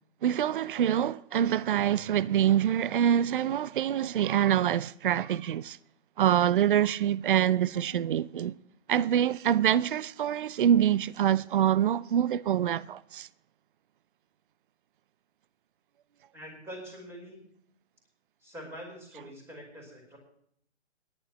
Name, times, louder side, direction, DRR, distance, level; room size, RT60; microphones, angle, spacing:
voice 1, 0.2-5.8 6.2-8.5 8.9-13.3, right 10 dB, 50° right, 0.6 m, -25 dB
voice 2, 16.3-17.4 18.4-20.2, equal, 5° right, 4.9 m, -44 dB
22.0 x 11.5 x 3.0 m
hypercardioid pair, 140°, 35 cm